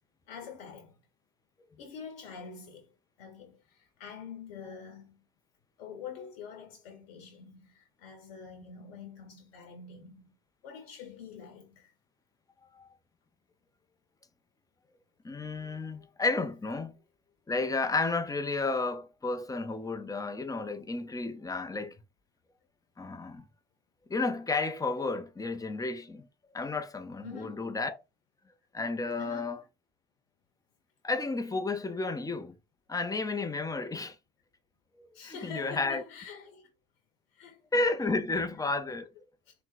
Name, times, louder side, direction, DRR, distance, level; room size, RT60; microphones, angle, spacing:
voice 1, 0.3-1.0 1.8-2.9 3.2-5.2 5.8-10.3 10.6-11.9 27.2-27.7 29.1-29.7 35.1-36.7 37.3-37.6 39.5-39.6, left 6 dB, 85° left, 1.1 m, -46 dB
voice 2, 15.2-16.9 17.5-21.9 23.0-23.5 24.1-26.3 26.5-27.9 28.7-29.6 31.0-32.6 32.9-34.2 35.0-36.0 37.7-39.1, left 3 dB, 10° left, 0.7 m, -32 dB
3.9 x 2.2 x 4.1 m
hypercardioid pair, 65°, 29 cm